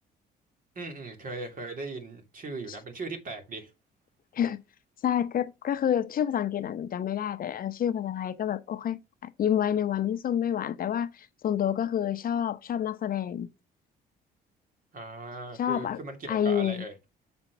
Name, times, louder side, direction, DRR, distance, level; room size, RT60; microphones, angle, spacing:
voice 1, 0.8-3.7 14.9-16.9, right 3 dB, 45° right, 2.6 m, -38 dB
voice 2, 5.0-13.5 15.6-16.0 16.3-16.8, left 9 dB, 50° left, 0.8 m, -28 dB
7.1 x 4.4 x 5.6 m
supercardioid pair, 80°, 19 cm